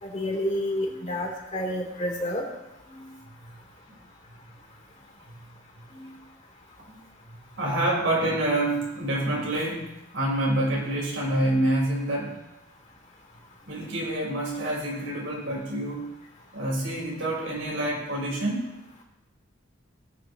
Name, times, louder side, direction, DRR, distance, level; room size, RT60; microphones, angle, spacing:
voice 1, 0.0-2.4, left 1 dB, 40° left, -1 dB, 3.3 m, -29 dB
voice 2, 7.6-12.4 13.7-16.1 16.5-18.6, right 1 dB, 85° right, -3 dB, 4.6 m, -27 dB
19.0 x 9.4 x 3.1 m, 0.95 s
head